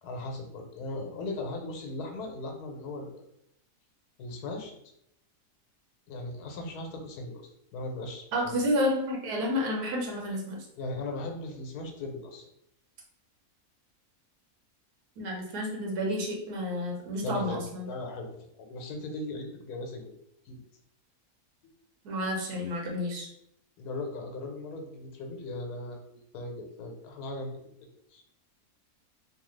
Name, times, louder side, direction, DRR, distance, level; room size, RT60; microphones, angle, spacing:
voice 1, 0.0-3.2 4.2-4.7 6.1-7.4 7.7-8.6 10.8-12.5 17.2-18.3 18.6-20.1 20.5-20.6 23.8-27.5 28.1-28.2, left 2 dB, 85° left, 3 dB, 1.2 m, -38 dB
voice 2, 8.3-10.7 15.2-17.9 22.0-23.3, left 1 dB, 85° right, -1 dB, 1.3 m, -30 dB
3.1 x 2.2 x 3.1 m, 0.75 s
omnidirectional pair, 1.6 m